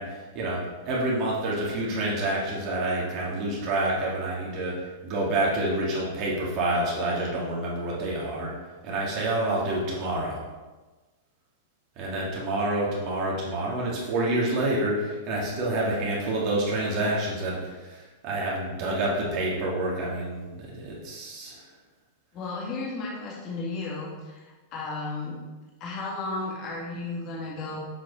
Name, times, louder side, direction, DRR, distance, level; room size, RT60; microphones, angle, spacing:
voice 1, 0.0-8.5 8.8-10.4 12.0-21.6, right 1 dB, 45° right, -4 dB, 2.4 m, -28 dB
voice 2, 22.3-25.4 25.8-27.8, left 3 dB, 40° left, -4 dB, 2.0 m, -34 dB
7.4 x 4.8 x 4.2 m, 1.2 s
hypercardioid pair, 125°, 0 cm